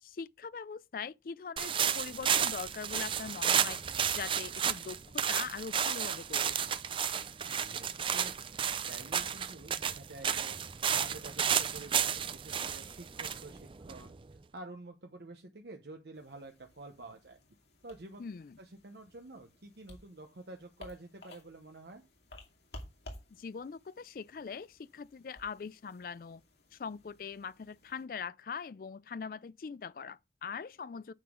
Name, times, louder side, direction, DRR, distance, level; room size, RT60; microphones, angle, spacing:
voice 1, 0.0-3.8 4.1-6.6 18.2-18.6 23.3-26.4 26.7-31.1, left 6 dB, 50° left, 0.4 m, -42 dB
sound 1, 1.6-14.3, right 8 dB, 30° right, 0.4 m, -32 dB
voice 2, 7.4-8.3 8.8-10.6 10.9-14.2 14.5-17.4 17.8-18.2 18.6-22.0, right 2 dB, 70° right, 1.0 m, -49 dB
sound 2, 16.1-28.0, left 1 dB, 70° left, 2.4 m, -55 dB
9.2 x 5.9 x 3.8 m
head